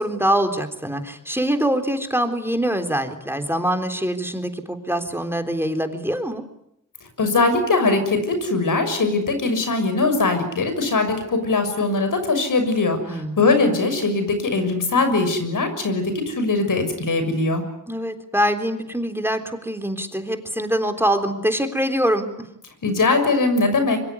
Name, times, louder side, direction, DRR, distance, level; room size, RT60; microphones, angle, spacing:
voice 1, 0.0-6.4 13.1-13.4 17.9-22.5, equal, 5° right, 6 dB, 3.7 m, -24 dB
voice 2, 7.2-17.6 22.8-24.0, left 3 dB, 75° left, 8 dB, 6.5 m, -21 dB
25.0 x 23.5 x 9.8 m, 0.78 s
cardioid pair, 60°, 32 cm